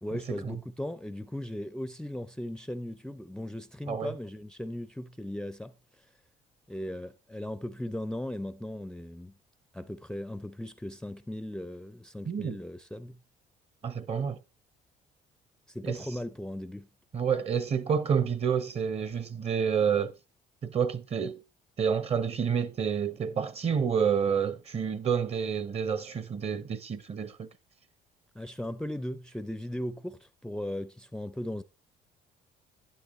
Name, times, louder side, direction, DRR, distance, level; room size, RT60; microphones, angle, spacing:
voice 1, 0.0-6.1 6.7-9.4 9.7-13.2 15.7-16.9 28.3-31.6, left 1 dB, 5° left, 0.5 m, -37 dB
voice 2, 12.3-12.6 13.8-14.4 15.8-16.0 17.1-20.1 20.6-21.4 21.8-27.5, right 7 dB, 35° right, 0.9 m, -29 dB
12.0 x 9.5 x 3.1 m
cardioid pair, 110°, 17 cm